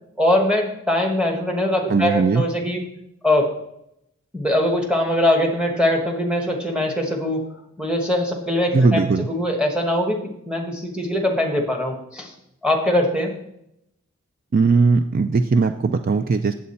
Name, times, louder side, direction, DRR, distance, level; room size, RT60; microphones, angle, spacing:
voice 1, 0.2-2.9 3.2-3.5 4.3-7.4 7.8-9.0 9.3-12.3 12.6-13.3, left 1 dB, 5° right, 1 dB, 1.1 m, -22 dB
voice 2, 1.9-2.4 8.7-9.3 14.5-16.5, right 4 dB, 40° right, 9 dB, 0.3 m, -18 dB
8.3 x 7.6 x 4.2 m, 0.80 s
head